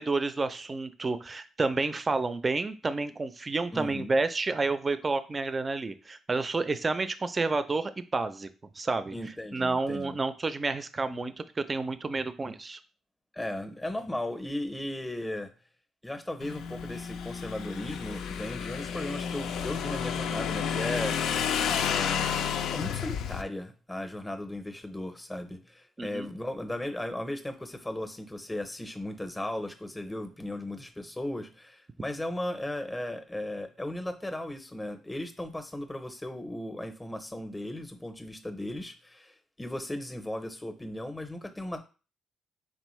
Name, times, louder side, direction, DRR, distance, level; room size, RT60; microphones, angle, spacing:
voice 1, 0.0-8.5 8.8-9.1 9.5-12.8 26.0-26.3, right 3 dB, 30° right, 12 dB, 0.4 m, -30 dB
voice 2, 3.7-4.1 9.1-10.2 13.3-15.5 16.0-21.4 21.8-22.3 22.7-41.8, left 1 dB, 10° left, 8 dB, 0.7 m, -36 dB
Motorcycle / Engine, 16.4-23.4, left 7 dB, 80° left, 0.4 m, -31 dB
4.1 x 3.5 x 3.1 m, 0.34 s
cardioid pair, 90°, 0 cm